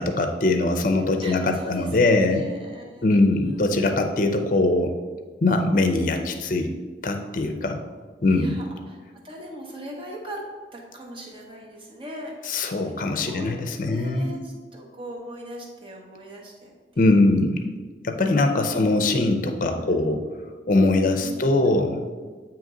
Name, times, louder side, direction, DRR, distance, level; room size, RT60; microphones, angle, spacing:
voice 1, 0.0-2.4 3.0-4.9 5.4-6.7 7.0-7.8 8.2-8.6 12.5-14.3 17.0-17.6 18.0-20.2 20.7-22.0, left 2 dB, 45° left, 6 dB, 0.5 m, -21 dB
voice 2, 1.2-3.7 8.3-10.4 10.7-12.9 13.2-13.5 13.8-17.0 19.8-20.0 21.2-21.7, equal, 30° right, -1 dB, 0.9 m, -40 dB
8.7 x 3.0 x 3.8 m, 1.4 s
head